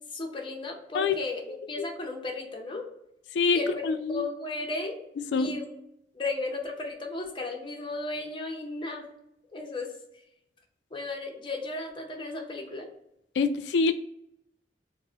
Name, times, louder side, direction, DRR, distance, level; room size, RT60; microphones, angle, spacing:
voice 1, 0.1-1.4 1.7-2.9 3.5-5.0 5.4-5.7 6.1-9.0 9.5-9.9 10.9-12.9, left 2 dB, 30° left, 2 dB, 0.6 m, -34 dB
voice 2, 3.8-4.3 5.3-5.5 13.4-13.9, left 4 dB, 75° left, 10 dB, 0.3 m, -25 dB
4.5 x 2.1 x 2.7 m, 0.79 s
head